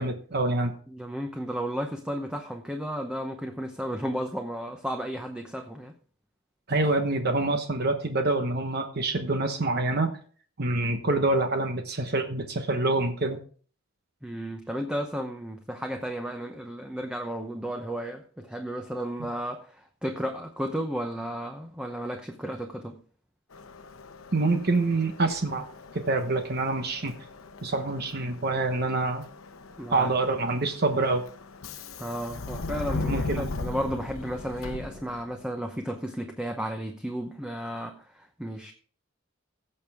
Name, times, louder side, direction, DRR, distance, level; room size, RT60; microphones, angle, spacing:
voice 1, 0.0-0.7 6.7-10.1 10.6-13.4 24.3-25.6 25.9-27.1 27.6-29.2 29.9-31.2 33.0-33.5, right 2 dB, 50° right, 6 dB, 1.1 m, -26 dB
voice 2, 0.9-5.9 14.2-23.0 29.8-30.1 32.0-38.7, equal, 5° right, 4 dB, 0.8 m, -33 dB
Subway metro underground, 23.5-35.5, left 3 dB, 85° left, 0.8 m, -38 dB
16.5 x 6.8 x 3.6 m, 0.43 s
head